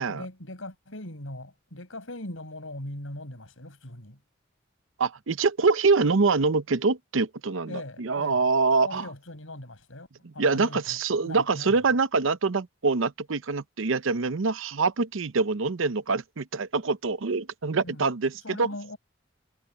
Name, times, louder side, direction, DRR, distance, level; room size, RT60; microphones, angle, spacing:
voice 1, 0.0-4.2 7.7-8.4 8.8-10.1 10.3-10.8 11.2-11.7 17.8-18.1 18.4-19.0, left 1 dB, 90° left, 7.3 m, -40 dB
voice 2, 5.0-9.1 10.2-18.7, right 4 dB, 85° right, 0.7 m, -25 dB
head